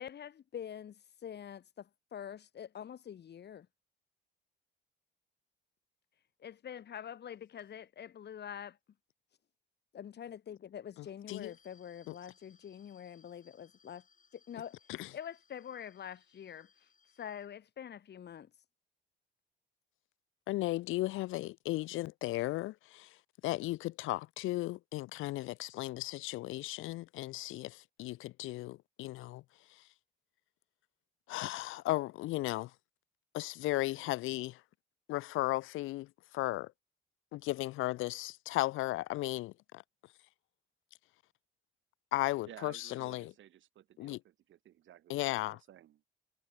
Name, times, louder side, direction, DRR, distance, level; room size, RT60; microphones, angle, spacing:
voice 1, 0.0-3.7 6.4-8.8 9.9-14.0 14.3-14.8 15.1-16.9 17.2-18.5, left 9 dB, 60° left, 2.7 m, -45 dB
sound 1, 11.4-17.5, left 6 dB, 40° left, 6.1 m, -68 dB
voice 2, 20.5-23.2 23.4-29.4 29.8-29.9 31.3-32.7 33.3-34.6 35.1-36.7 37.3-39.8 42.1-43.3 44.0-44.2 45.1-45.6, left 18 dB, 85° left, 0.6 m, -35 dB
voice 3, 42.5-46.0, right 12 dB, 75° right, 3.9 m, -55 dB
cardioid pair, 90°, 20 cm